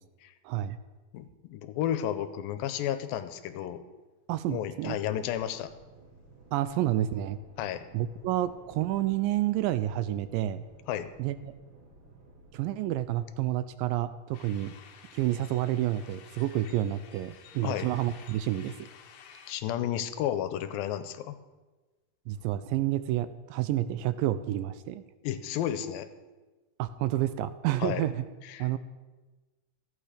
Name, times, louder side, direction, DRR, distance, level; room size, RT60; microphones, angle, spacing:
voice 1, 0.4-0.8 4.3-5.0 6.5-7.4 7.9-10.6 11.2-11.5 12.5-14.7 15.1-18.7 22.3-25.0 26.8-28.2 28.6-28.8, right 13 dB, 80° right, 13 dB, 2.1 m, -29 dB
voice 2, 1.1-3.8 4.5-5.7 7.6-7.8 10.9-11.1 17.6-17.9 19.5-21.4 25.2-26.1 27.8-28.0 28.4-28.7, left 11 dB, 85° left, 11 dB, 2.4 m, -32 dB
sound 1, 4.9-12.6, right 3 dB, 65° right, 5.0 m, -55 dB
sound 2, 14.3-19.5, left 7 dB, 70° left, 2.2 m, -52 dB
14.5 x 8.9 x 5.0 m, 1.2 s
omnidirectional pair, 4.1 m